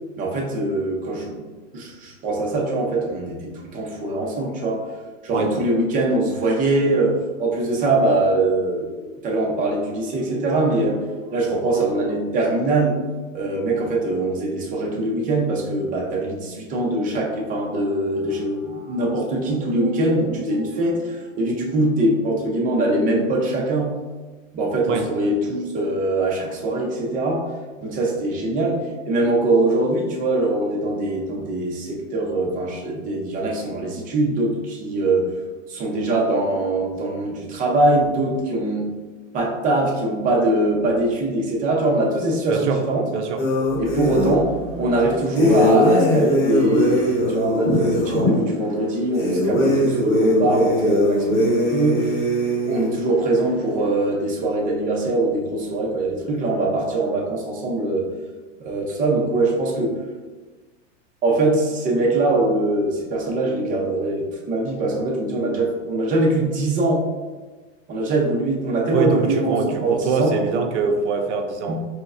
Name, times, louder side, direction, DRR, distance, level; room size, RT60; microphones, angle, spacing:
voice 1, 0.2-1.4 1.7-4.8 5.2-13.0 13.3-23.9 24.5-27.5 27.8-35.3 35.7-38.9 39.3-43.1 43.7-52.1 52.5-58.0 58.6-60.0 61.2-67.0 67.9-70.3 71.7-71.8, right 2 dB, 20° right, -1 dB, 0.6 m, -22 dB
voice 2, 42.5-42.8 43.1-43.4 68.9-71.8, right 5 dB, 70° right, 4 dB, 0.5 m, -23 dB
sound 1, 43.4-44.4 45.4-48.3 49.2-52.9, equal, 35° left, 0.9 m, -20 dB
4.6 x 2.1 x 2.4 m, 1.3 s
supercardioid pair, 135°, 37 cm